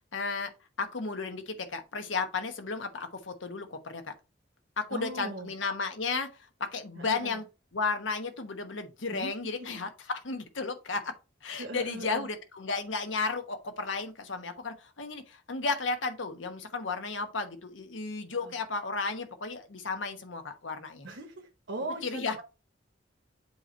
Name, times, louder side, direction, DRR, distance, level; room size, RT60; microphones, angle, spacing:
voice 1, 0.1-0.5 0.8-4.1 4.8-6.3 6.6-7.4 7.7-11.1 11.4-21.1 22.0-22.4, left 4 dB, 80° left, 1.1 m, -33 dB
voice 2, 4.9-5.5 6.9-7.4 9.1-9.3 9.6-9.7 11.6-12.3 18.4-18.5 21.0-22.4, right 1 dB, 70° right, 1.2 m, -39 dB
7.8 x 2.9 x 4.4 m
head